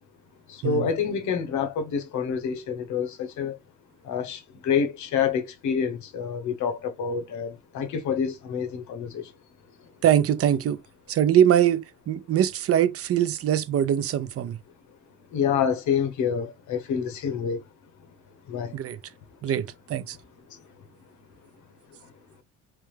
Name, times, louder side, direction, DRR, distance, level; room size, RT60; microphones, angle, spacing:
voice 1, 0.5-3.6 4.0-9.3 15.3-17.6 18.5-18.8 20.5-20.6, left 7 dB, 65° left, 1.0 m, -27 dB
voice 2, 10.0-10.8 11.1-14.6 18.7-19.0 19.4-20.2, right 10 dB, 50° right, 0.6 m, -22 dB
3.5 x 3.4 x 3.2 m
cardioid pair, 105°, 31 cm